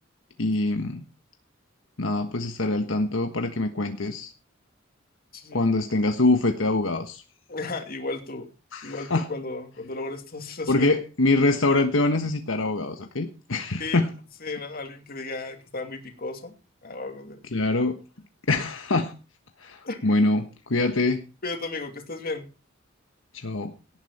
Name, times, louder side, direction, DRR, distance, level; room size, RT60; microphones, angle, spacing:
voice 1, 0.4-1.1 2.0-4.3 5.5-7.2 8.7-9.3 10.7-14.1 17.5-18.0 18.5-19.1 19.6-21.2 23.3-23.7, left 2 dB, 75° left, 5 dB, 1.4 m, -24 dB
voice 2, 5.3-5.6 7.5-8.5 8.8-10.9 13.8-14.0 14.4-16.5 16.8-17.4 19.8-20.1 21.4-22.5, left 3 dB, 50° left, 5 dB, 2.8 m, -34 dB
18.0 x 10.0 x 4.3 m, 0.32 s
head